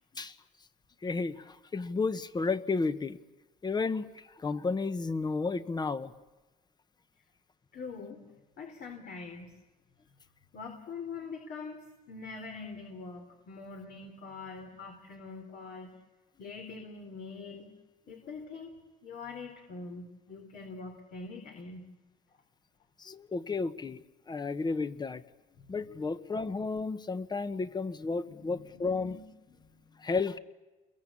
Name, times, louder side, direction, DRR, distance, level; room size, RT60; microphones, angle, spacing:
voice 1, 1.0-3.2 3.6-6.1 23.0-25.2 25.7-29.2 30.0-30.4, left 4 dB, 25° left, 13 dB, 1.3 m, -32 dB
voice 2, 7.7-8.3 8.6-9.6 10.5-15.9 16.4-17.7 18.1-18.8 19.0-21.9 25.6-25.7 28.2-30.1, left 4 dB, 60° left, 3 dB, 3.9 m, -44 dB
29.5 x 22.5 x 8.6 m, 1.2 s
cardioid pair, 110°, 17 cm